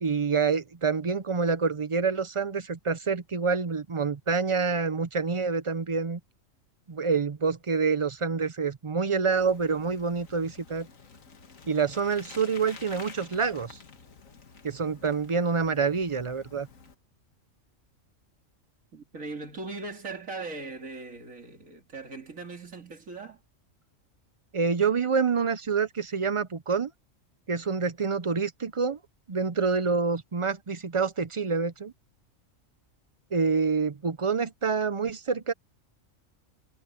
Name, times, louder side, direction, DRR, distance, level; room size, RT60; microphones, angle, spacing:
voice 1, 0.0-6.2 6.9-10.9 11.7-13.8 14.6-16.7 24.5-26.9 27.5-29.0 29.3-31.9 33.3-35.5, right 5 dB, 35° right, 0.5 m, -27 dB
Bicycle, 9.4-16.9, left 5 dB, 80° left, 2.2 m, -50 dB
voice 2, 18.9-23.4, right 3 dB, 85° right, 3.1 m, -39 dB
omnidirectional pair, 1.3 m